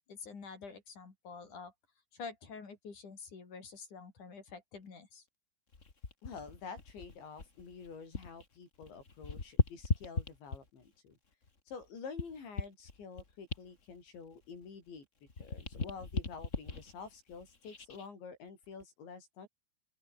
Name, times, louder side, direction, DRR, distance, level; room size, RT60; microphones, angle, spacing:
voice 1, 0.1-1.7 2.1-5.2, left 5 dB, 45° left, 5.4 m, -48 dB
sound 1, 5.7-8.5 8.7-10.9 11.4-15.0 15.3-18.1 18.6-18.8, left 4 dB, 25° left, 1.6 m, -38 dB
voice 2, 6.2-11.2 11.7-15.1 15.4-19.5, left 5 dB, 70° left, 8.8 m, -48 dB
open air
omnidirectional pair, 5.4 m